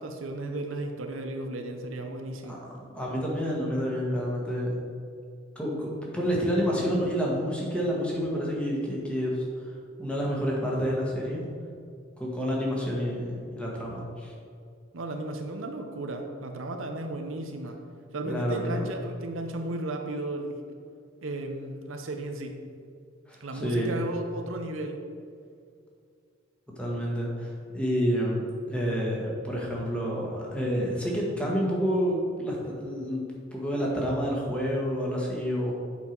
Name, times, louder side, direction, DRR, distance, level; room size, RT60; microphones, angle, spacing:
voice 1, 0.0-2.7 14.9-17.8 18.1-20.6 21.2-22.6 23.4-25.0, right 2 dB, 75° right, 4 dB, 0.8 m, -34 dB
voice 2, 2.5-4.7 5.5-9.4 10.0-11.4 12.2-14.3 18.2-18.8 23.3-23.9 26.8-33.2 33.5-35.7, equal, 5° left, -3 dB, 1.5 m, -29 dB
8.3 x 5.6 x 4.6 m, 2.3 s
head